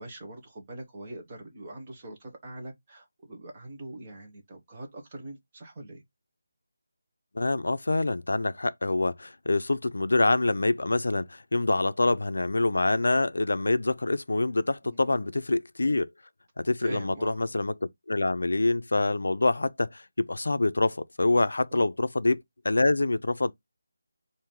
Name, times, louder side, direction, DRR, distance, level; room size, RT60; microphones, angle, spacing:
voice 1, 0.0-6.0 14.8-15.3 16.8-17.4 21.7-21.9, right 1 dB, 15° right, 0.9 m, -43 dB
voice 2, 7.3-16.1 16.6-17.7 18.1-23.5, left 2 dB, 75° left, 0.4 m, -26 dB
4.6 x 2.6 x 3.6 m
figure-of-eight pair, 180°, 0 cm